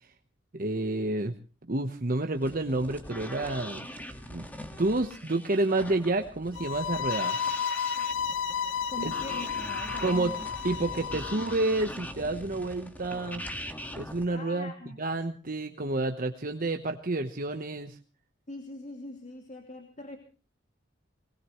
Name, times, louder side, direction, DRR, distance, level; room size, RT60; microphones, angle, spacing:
voice 1, 0.5-1.3 1.7-3.8 4.3-4.5 4.8-7.4 10.0-10.3 10.6-13.4 14.0-14.7 15.0-18.0, right 2 dB, 50° right, 6 dB, 1.1 m, -29 dB
sound 1, 2.3-14.2, equal, 10° left, 1.8 m, -42 dB
sound 2, 6.5-11.5, left 7 dB, 80° left, 0.7 m, -32 dB
voice 2, 8.9-10.5 14.3-15.0 18.5-20.2, left 1 dB, 40° left, 3 dB, 2.6 m, -42 dB
22.5 x 20.0 x 3.1 m, 0.36 s
head